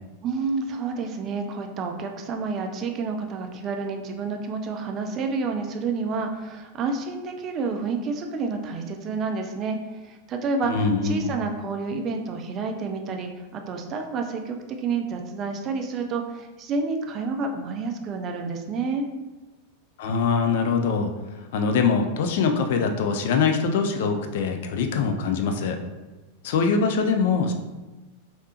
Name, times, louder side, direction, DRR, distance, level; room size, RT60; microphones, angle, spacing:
voice 1, 0.2-9.8 10.0-10.7 11.0-19.1, right 4 dB, 30° right, 4 dB, 0.4 m, -29 dB
voice 2, 10.6-11.3 20.0-21.1 21.5-25.8 26.4-27.5, left 5 dB, 55° left, 5 dB, 0.3 m, -23 dB
3.3 x 2.7 x 2.8 m, 1.1 s
figure-of-eight pair, 90°, 0 cm